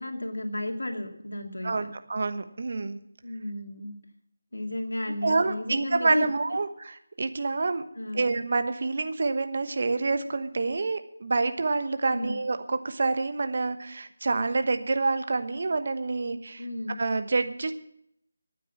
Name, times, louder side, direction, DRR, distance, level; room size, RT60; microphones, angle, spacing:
voice 1, 0.0-1.7 3.2-3.9 4.5-6.3 8.0-8.2 12.1-12.4 16.6-17.0, left 1 dB, 80° left, 3 dB, 2.5 m, -33 dB
voice 2, 1.6-3.0 5.2-7.8 8.1-16.6 17.0-17.7, right 3 dB, 50° right, 9 dB, 1.1 m, -27 dB
13.5 x 9.3 x 7.1 m, 0.73 s
figure-of-eight pair, 160°, 0 cm